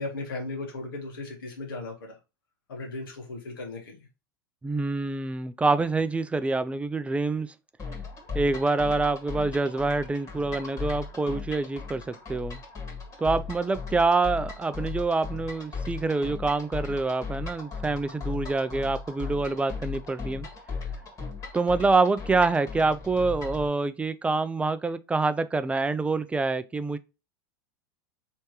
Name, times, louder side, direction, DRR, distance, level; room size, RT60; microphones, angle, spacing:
voice 1, 0.0-2.1 2.7-4.0, left 2 dB, 85° left, 1.6 m, -36 dB
voice 2, 4.6-7.5 8.3-12.6 13.2-20.5 21.5-27.0, right 3 dB, 10° right, 0.4 m, -26 dB
sound 1, 7.8-23.7, left 5 dB, 30° left, 1.7 m, -37 dB
3.4 x 3.2 x 4.3 m
hypercardioid pair, 105°, 12 cm